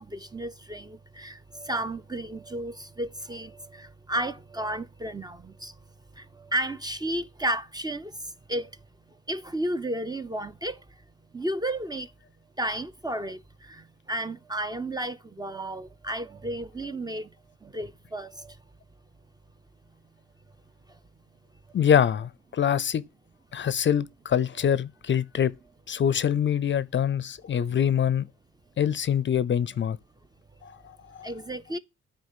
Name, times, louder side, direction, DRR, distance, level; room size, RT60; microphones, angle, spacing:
voice 1, 0.0-5.8 6.2-8.7 9.3-10.8 11.3-12.1 12.6-17.3 17.6-18.6 20.9-21.0 26.0-26.1 31.2-31.8, right 1 dB, 15° right, 0.5 m, -33 dB
voice 2, 21.7-23.0 23.5-25.5 25.9-28.3 28.8-30.0 30.6-31.3, left 8 dB, 40° left, 0.5 m, -25 dB
9.5 x 4.3 x 7.3 m
cardioid pair, 90°, 30 cm